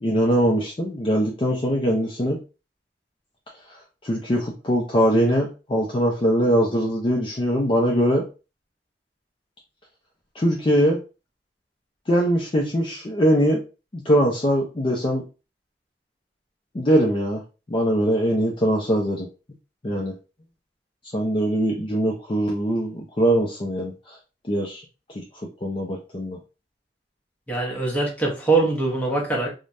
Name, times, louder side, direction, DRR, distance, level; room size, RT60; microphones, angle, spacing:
voice 1, 0.0-2.4 4.0-8.3 10.4-11.0 12.1-13.6 13.9-15.2 16.7-17.4 17.7-19.3 19.8-20.1 21.1-24.2 24.5-24.8 25.1-25.2 25.6-26.4, equal, 30° left, -1 dB, 0.5 m, -22 dB
voice 2, 27.5-29.5, right 3 dB, 10° left, -2 dB, 0.9 m, -22 dB
3.2 x 2.2 x 2.6 m, 0.31 s
head